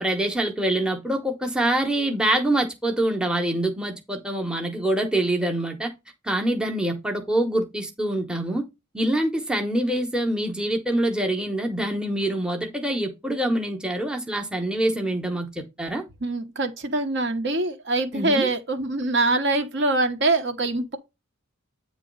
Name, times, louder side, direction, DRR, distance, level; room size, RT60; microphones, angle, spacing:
voice 1, 0.0-5.9 6.2-8.6 8.9-16.0 18.1-18.5, right 1 dB, 5° right, 0.9 m, -25 dB
voice 2, 16.2-21.0, right 2 dB, 50° right, 1.1 m, -24 dB
8.9 x 3.0 x 5.3 m
head